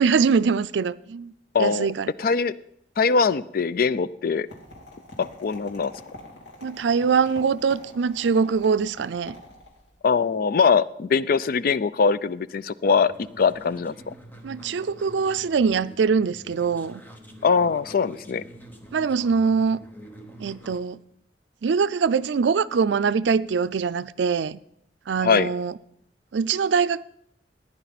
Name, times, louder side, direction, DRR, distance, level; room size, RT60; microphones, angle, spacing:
voice 1, 0.0-1.3 1.6-2.1 6.6-9.4 14.4-17.0 18.9-19.8 20.4-21.0 21.6-24.6 25.1-25.7 26.3-27.0, right 5 dB, 85° right, 0.4 m, -23 dB
voice 2, 1.5-1.9 2.2-2.5 3.0-4.5 5.4-5.9 10.0-14.1 17.4-18.4 25.2-25.5, left 5 dB, 55° left, 0.4 m, -22 dB
sound 1, 4.5-9.9, left 1 dB, 70° left, 2.6 m, -45 dB
sound 2, 13.1-20.8, right 1 dB, 10° left, 1.2 m, -46 dB
15.5 x 10.0 x 4.1 m
head